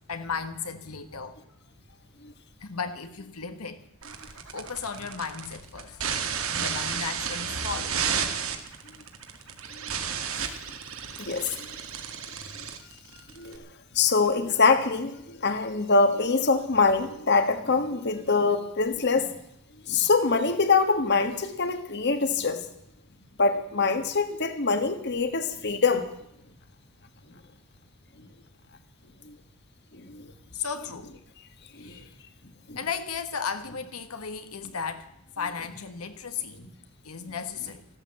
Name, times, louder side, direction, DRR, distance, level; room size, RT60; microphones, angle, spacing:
voice 1, 0.1-1.6 1.9-2.0 2.6-3.8 4.2-8.2 9.6-9.7 11.0-11.2 11.6-12.1 30.5-31.1 31.8-32.2 32.8-35.1 35.4-36.6 37.0-37.8, left 6 dB, 80° left, 1.4 m, -35 dB
sound 1, 4.0-13.6, right 7 dB, 70° right, 2.0 m, -32 dB
voice 2, 11.2-11.5 13.4-13.6 13.9-19.3 19.9-22.6 23.4-26.1 29.2-29.3 29.9-30.2 31.7-32.0 32.7-32.8, left 4 dB, 50° left, 1.5 m, -24 dB
15.0 x 13.0 x 7.6 m
head